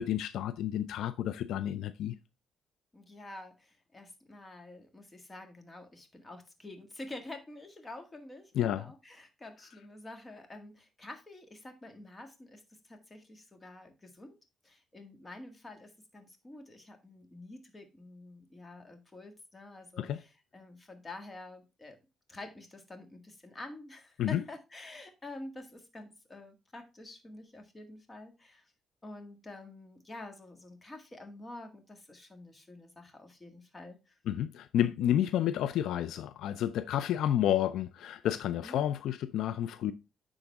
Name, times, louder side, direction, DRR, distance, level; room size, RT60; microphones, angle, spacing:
voice 1, 0.0-2.2 8.5-8.8 20.0-20.2 24.2-24.4 34.3-39.9, left 11 dB, 80° left, 0.4 m, -30 dB
voice 2, 2.9-14.3 14.6-22.0 22.3-28.7 29.0-34.2 35.0-35.2 38.6-38.8, left 2 dB, 25° left, 1.7 m, -48 dB
9.9 x 3.9 x 3.5 m
cardioid pair, 90°, 0 cm